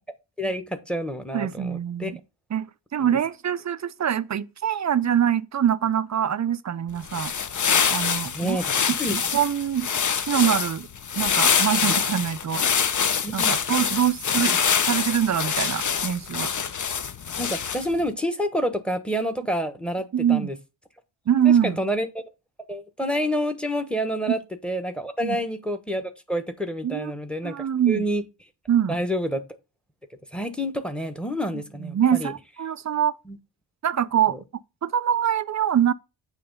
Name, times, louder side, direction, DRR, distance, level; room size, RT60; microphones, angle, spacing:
voice 1, 0.4-2.1 3.0-3.1 8.3-9.2 11.8-11.9 13.2-13.6 17.4-20.6 21.4-22.1 22.7-28.2 28.9-29.4 30.3-32.3 33.3-33.4 34.3-34.4, equal, ahead, 1.2 m, -28 dB
voice 2, 1.3-2.2 2.5-7.3 7.9-8.6 8.9-9.9 10.2-10.9 11.2-12.9 13.3-16.5 20.1-20.5 21.3-21.8 24.3-24.4 25.2-25.4 26.8-27.1 27.4-28.0 28.7-29.0 31.8-33.1 33.8-34.4 34.8-35.9, right 9 dB, 35° right, 0.5 m, -24 dB
sound 1, 7.0-18.0, left 6 dB, 40° left, 0.7 m, -25 dB
8.6 x 3.2 x 5.4 m
cardioid pair, 85°, 49 cm